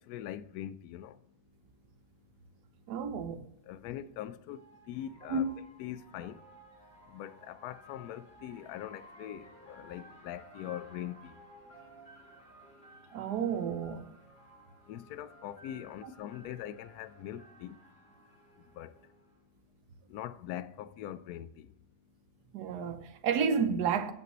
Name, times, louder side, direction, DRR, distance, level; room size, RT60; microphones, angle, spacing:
voice 1, 0.1-1.2 3.7-4.6 4.9-5.4 5.8-6.4 7.1-11.3 14.9-17.8 18.8-18.9 20.1-21.7, left 11 dB, 70° left, 1.0 m, -42 dB
sound 1, 2.3-2.4 3.8-19.4, right 1 dB, 35° left, 2.4 m, -56 dB
voice 2, 2.9-3.5 5.3-5.6 13.1-14.1 16.0-16.1 22.5-24.1, right 5 dB, 70° right, 1.3 m, -31 dB
15.0 x 5.4 x 3.1 m
omnidirectional pair, 1.8 m